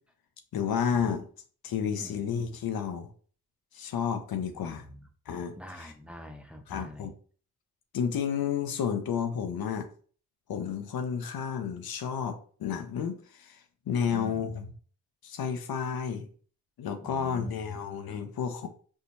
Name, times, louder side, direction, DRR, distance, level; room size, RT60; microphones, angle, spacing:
voice 1, 0.5-1.2 1.6-3.1 3.7-4.8 5.3-5.5 6.7-7.1 7.9-9.9 10.5-13.6 13.9-14.7 15.2-16.3 16.8-18.7, left 7 dB, 70° left, 0.7 m, -31 dB
voice 2, 4.5-5.1 5.5-7.1 14.0-14.5 17.0-17.8, left 1 dB, 5° right, 0.6 m, -45 dB
4.4 x 2.3 x 2.6 m
supercardioid pair, 50°, 38 cm